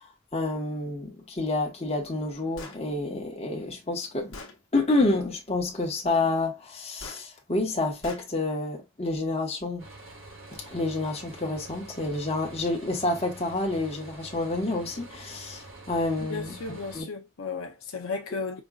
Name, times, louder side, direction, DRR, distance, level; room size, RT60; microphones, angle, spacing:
voice 1, 0.3-4.3 4.7-9.9 10.7-16.6 16.9-17.0, left 2 dB, 30° left, 1.2 m, -28 dB
Gunshot gunfire, 2.6-2.8 3.7-3.8 4.3-4.6 7.0-7.2 8.0-8.3, left 3 dB, 65° left, 1.1 m, -41 dB
sound 1, 9.8-17.0, right 2 dB, 70° right, 1.8 m, -46 dB
voice 2, 16.3-18.6, left 4 dB, 80° left, 0.7 m, -34 dB
5.2 x 2.4 x 2.3 m
head